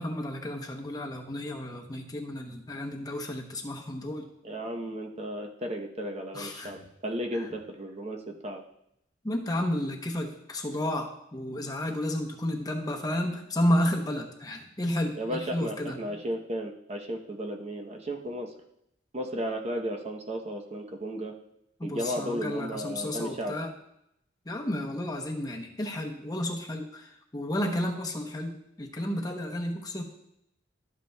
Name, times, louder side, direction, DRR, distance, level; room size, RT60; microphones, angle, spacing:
voice 1, 0.0-4.3 6.3-6.9 9.2-16.0 21.8-23.7 24.5-30.0, left 1 dB, 20° left, 2 dB, 0.8 m, -32 dB
voice 2, 4.4-8.6 15.1-18.5 19.1-21.3 21.8-23.6, equal, 35° right, 2 dB, 0.9 m, -34 dB
12.5 x 8.0 x 2.3 m, 0.78 s
head